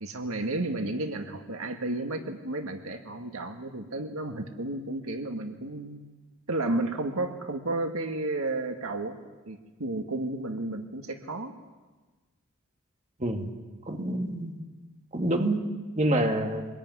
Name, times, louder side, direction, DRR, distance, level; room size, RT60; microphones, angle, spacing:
voice 1, 0.0-6.0 6.5-9.2 9.5-11.5, right 2 dB, 75° right, 5 dB, 1.9 m, -32 dB
voice 2, 13.2-13.5 13.9-14.6 15.1-15.6 16.0-16.6, right 1 dB, 35° right, 3 dB, 2.4 m, -27 dB
25.0 x 21.0 x 9.7 m, 1.3 s
head